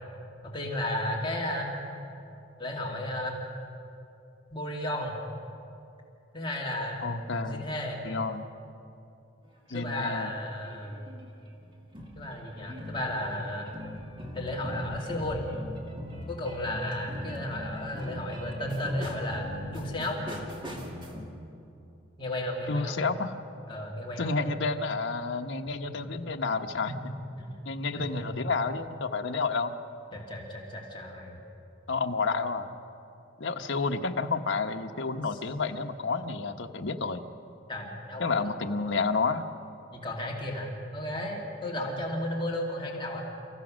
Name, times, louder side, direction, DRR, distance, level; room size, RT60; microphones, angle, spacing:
voice 1, 0.4-1.8 2.6-3.4 4.5-5.2 6.3-7.0 7.4-8.1 9.7-11.0 12.2-13.7 14.3-15.5 16.3-20.2 22.2-23.0 23.7-24.4 25.8-25.9 26.9-27.1 27.4-27.5 28.0-28.2 30.1-31.4 35.3-35.4 37.7-38.7 39.9-43.2, left 1 dB, 25° left, -2 dB, 2.3 m, -34 dB
voice 2, 7.0-7.7 8.0-8.5 9.7-10.3 22.7-23.4 24.2-26.9 27.7-29.7 31.9-32.7 33.4-37.2 38.2-39.5, left 4 dB, 70° left, 5 dB, 1.0 m, -30 dB
sound 1, 9.4-10.1 10.6-21.2, equal, 25° right, 2.4 m, -40 dB
29.5 x 15.0 x 6.3 m, 2.7 s
head